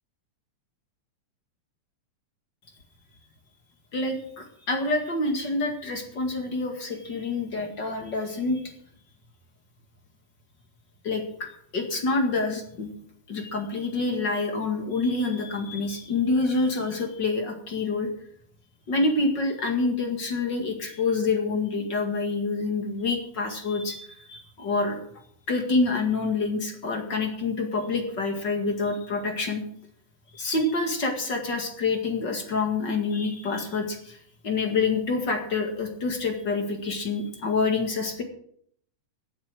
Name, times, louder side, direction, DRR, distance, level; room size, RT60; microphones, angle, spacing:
voice 1, 3.9-8.6 11.0-11.5 11.7-12.9 13.3-18.1 18.9-25.0 25.5-29.6 30.3-34.2 34.4-38.2, left 3 dB, 40° left, 3 dB, 2.1 m, -27 dB
16.0 x 8.6 x 6.2 m, 0.65 s
omnidirectional pair, 3.8 m